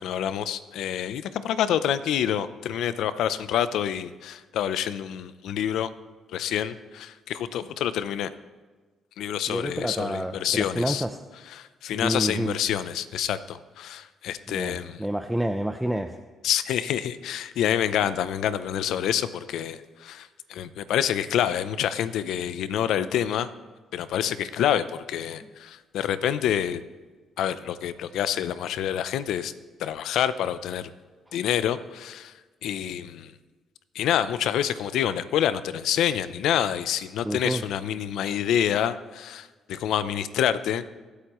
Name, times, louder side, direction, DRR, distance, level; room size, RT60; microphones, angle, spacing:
voice 1, 0.0-5.9 6.3-8.3 9.2-11.0 11.6-15.0 16.4-23.5 23.9-26.8 27.4-29.5 29.8-30.9 31.3-32.3 32.6-33.3 33.9-40.8, left 10 dB, 80° left, 13 dB, 0.6 m, -27 dB
voice 2, 9.5-11.2 11.9-12.6 14.5-16.2 31.3-31.4 37.2-37.6, right 1 dB, 5° right, 6 dB, 0.6 m, -29 dB
24.0 x 8.2 x 3.1 m, 1.3 s
cardioid pair, 90°, 0 cm